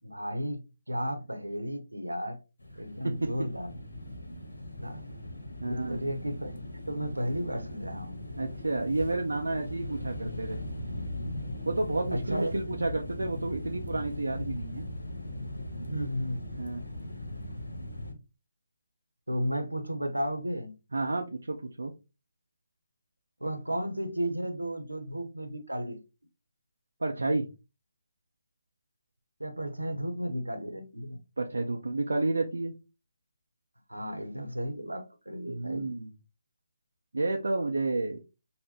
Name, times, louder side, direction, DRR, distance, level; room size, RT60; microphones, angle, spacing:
voice 1, 0.0-2.4 2.8-3.7 4.8-5.2 5.7-6.5 6.9-8.2 12.1-12.5 15.9-16.5 19.3-20.7 23.4-26.0 29.4-31.2 33.9-35.9, equal, 80° right, 0.9 m, -34 dB
sound 1, 2.6-18.1, left 1 dB, 70° left, 1.0 m, -39 dB
voice 2, 5.6-6.0 8.4-10.6 11.7-14.8 16.6-16.8 20.9-21.9 27.0-27.5 31.4-32.7 35.5-36.1 37.1-38.2, right 2 dB, 65° right, 0.5 m, -30 dB
5.4 x 2.1 x 2.8 m
figure-of-eight pair, 145°, 0 cm